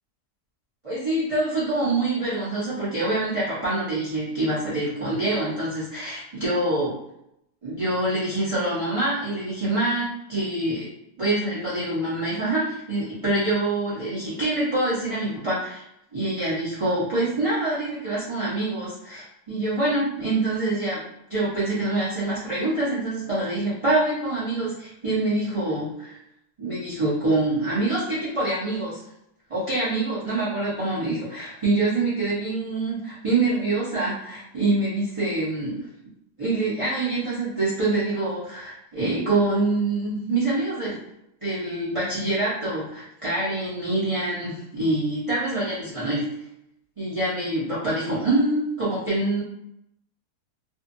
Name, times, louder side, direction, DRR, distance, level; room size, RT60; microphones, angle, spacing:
voice 1, 0.8-7.0 7.6-10.9 11.2-15.8 16.1-21.0 21.3-26.2 26.6-29.0 29.5-35.9 36.4-41.0 41.4-46.3 47.0-49.4, right 2 dB, 30° right, -10 dB, 0.6 m, -25 dB
2.6 x 2.4 x 2.5 m, 0.80 s
omnidirectional pair, 1.7 m